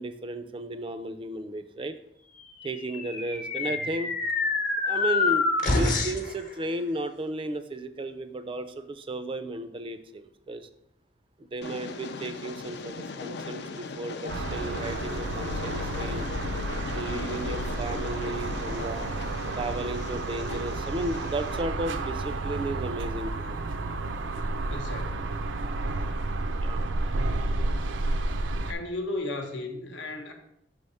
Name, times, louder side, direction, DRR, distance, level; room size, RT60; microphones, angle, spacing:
voice 1, 0.0-2.0 2.6-4.2 4.8-10.7 11.4-16.3 16.9-19.1 19.6-23.6 26.5-26.9, right 1 dB, 30° right, 9 dB, 0.4 m, -34 dB
sound 1, 2.7-6.3, left 3 dB, 45° left, 0.8 m, -26 dB
Train, 11.6-21.6, left 4 dB, 60° left, 0.4 m, -38 dB
sound 2, 14.3-28.7, right 2 dB, 90° right, 0.5 m, -31 dB
voice 2, 24.7-25.5 28.6-30.3, left 2 dB, 80° left, 4 dB, 1.0 m, -35 dB
5.8 x 3.4 x 5.4 m, 0.76 s
head